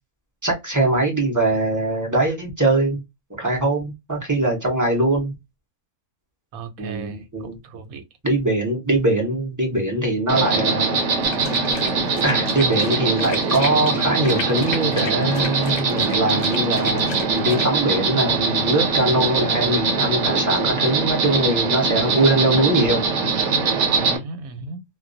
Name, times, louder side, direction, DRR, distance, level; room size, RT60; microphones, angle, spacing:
voice 1, 0.4-3.0 3.4-5.3 6.8-7.6 8.2-10.9 12.2-23.0, right 2 dB, 25° right, 0.4 m, -22 dB
voice 2, 6.5-8.0 24.0-24.8, right 3 dB, 85° right, 1.0 m, -36 dB
Insect, 10.3-24.2, right 4 dB, 65° right, 0.9 m, -22 dB
sound 1, 11.2-17.7, left 5 dB, 65° left, 0.7 m, -34 dB
2.2 x 2.2 x 2.4 m
omnidirectional pair, 1.5 m